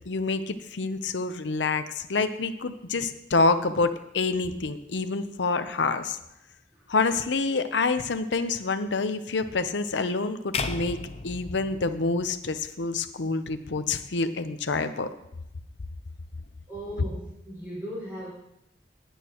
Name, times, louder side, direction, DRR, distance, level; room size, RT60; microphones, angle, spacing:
voice 1, 0.1-6.2 6.9-11.0 11.2-15.1, left 3 dB, 90° left, 10 dB, 0.7 m, -27 dB
sound 1, 10.5-12.8, left 4 dB, 35° left, 0.6 m, -35 dB
voice 2, 16.7-18.3, equal, 10° right, -7 dB, 5.1 m, -37 dB
18.5 x 8.3 x 3.0 m, 0.85 s
head